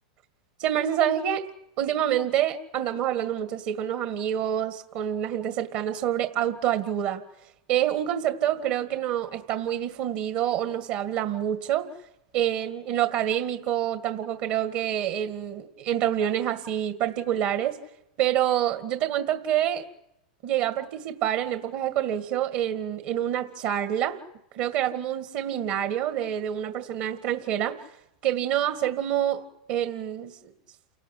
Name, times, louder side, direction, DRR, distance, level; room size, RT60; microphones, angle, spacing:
voice 1, 0.6-1.5 1.8-7.2 7.7-11.9 12.3-17.8 18.2-19.8 20.4-24.2 24.5-27.9 28.2-30.4, right 11 dB, 55° right, 9 dB, 2.0 m, -27 dB
29.0 x 18.5 x 8.4 m, 0.85 s
hypercardioid pair, 120°, 3 cm